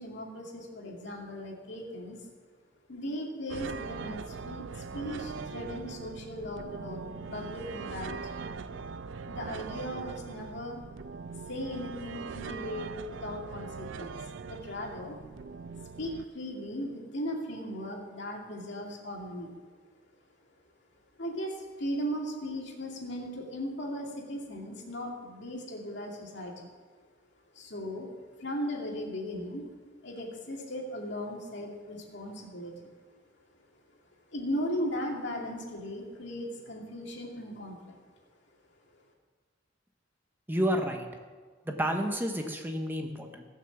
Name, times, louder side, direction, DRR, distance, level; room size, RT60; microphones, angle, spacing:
voice 1, 0.0-2.2 2.9-4.6 4.9-8.4 9.3-10.8 11.5-15.2 16.0-19.5 21.2-21.5 21.8-26.7 27.6-28.1 28.4-29.6 30.0-32.9 34.3-38.0, equal, 65° left, 0 dB, 2.4 m, -37 dB
sound 1, 3.5-16.2, right 5 dB, 75° right, 0.5 m, -41 dB
voice 2, 40.5-41.1 41.7-43.5, equal, 10° right, 4 dB, 0.9 m, -30 dB
16.5 x 6.4 x 7.1 m, 1.5 s
head